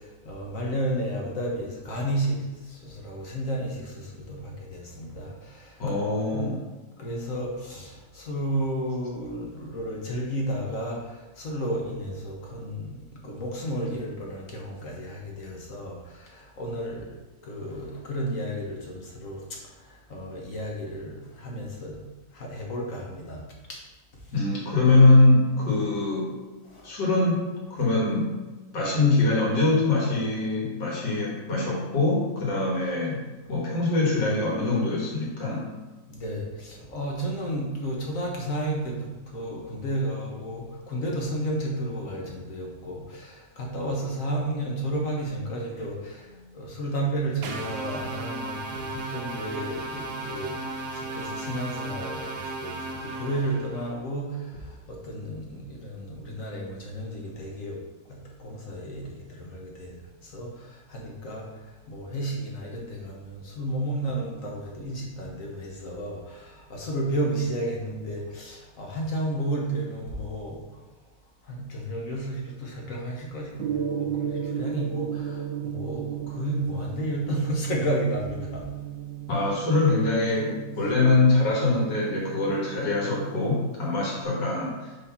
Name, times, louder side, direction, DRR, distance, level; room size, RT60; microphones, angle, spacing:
voice 1, 0.0-6.0 6.3-6.4 7.0-17.2 17.4-22.0 22.3-23.4 23.7-23.8 26.7-26.9 36.1-57.8 58.1-70.6 71.4-78.6, right 1 dB, 55° left, -1 dB, 1.4 m, -32 dB
voice 2, 5.8-6.6 24.3-26.4 26.8-28.3 28.7-33.2 33.5-35.7 79.3-84.9, left 2 dB, 85° left, -5 dB, 2.3 m, -23 dB
sound 1, 47.4-53.9, right 2 dB, 70° right, 1.3 m, -35 dB
Gong, 73.6-84.2, right 9 dB, 90° right, 1.2 m, -35 dB
5.0 x 4.1 x 5.6 m, 1.2 s
omnidirectional pair, 1.8 m